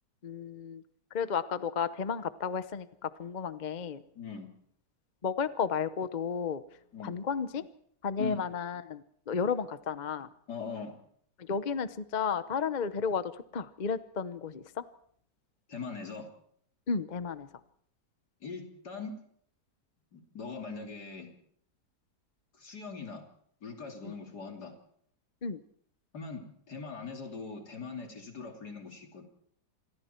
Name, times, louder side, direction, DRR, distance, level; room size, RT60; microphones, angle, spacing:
voice 1, 0.2-0.8 1.1-4.0 5.2-6.6 7.0-7.7 8.0-10.3 11.4-14.8 16.9-17.5 24.0-24.1 25.4-25.6, left 6 dB, 40° left, 13 dB, 0.7 m, -33 dB
voice 2, 4.2-4.5 6.9-7.2 8.2-8.4 10.5-10.9 15.7-16.3 18.4-19.2 20.1-21.3 22.5-23.2 23.6-24.7 26.1-29.2, left 4 dB, 70° left, 3 dB, 3.7 m, -41 dB
27.5 x 21.5 x 4.5 m, 0.65 s
omnidirectional pair, 1.8 m